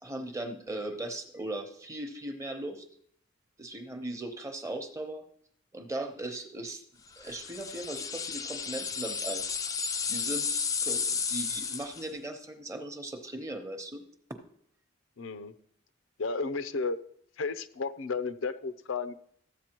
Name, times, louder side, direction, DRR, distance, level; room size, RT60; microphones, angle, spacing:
voice 1, 0.0-2.9 3.6-5.2 5.7-6.8 7.2-9.4 10.0-14.0, right 1 dB, 15° right, 6 dB, 0.8 m, -38 dB
sound 1, 7.3-12.1, left 6 dB, 15° left, 0.4 m, -33 dB
voice 2, 15.2-15.5 16.2-17.0 17.4-19.1, left 4 dB, 85° left, 12 dB, 0.6 m, -33 dB
14.0 x 8.2 x 3.0 m, 0.64 s
head